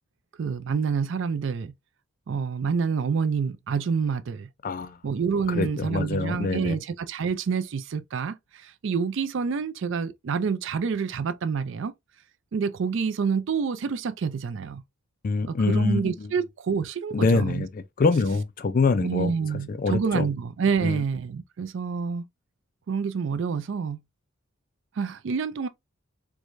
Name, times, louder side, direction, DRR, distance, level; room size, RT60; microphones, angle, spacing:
voice 1, 0.4-1.7 2.3-4.5 5.0-11.9 12.5-14.8 15.5-17.6 19.0-22.2 22.9-24.0 25.0-25.7, right 5 dB, 60° right, 0.4 m, -27 dB
voice 2, 4.6-5.0 5.5-6.8 15.2-16.3 17.1-19.3 19.7-20.3 20.8-21.0, left 4 dB, 40° left, 0.3 m, -25 dB
4.6 x 2.2 x 2.5 m
head